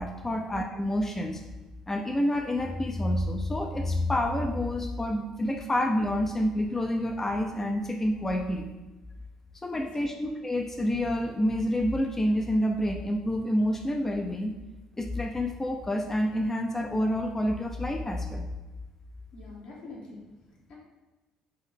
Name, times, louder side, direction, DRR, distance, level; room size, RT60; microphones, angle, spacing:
voice 1, 0.0-1.4 1.9-8.7 9.6-14.5 15.0-18.5, left 1 dB, 15° left, 4 dB, 0.5 m, -28 dB
voice 2, 9.7-10.1 19.3-20.2 20.7-20.8, left 2 dB, 55° left, -3 dB, 1.4 m, -45 dB
5.5 x 2.6 x 3.6 m, 1.2 s
figure-of-eight pair, 55°, 2 cm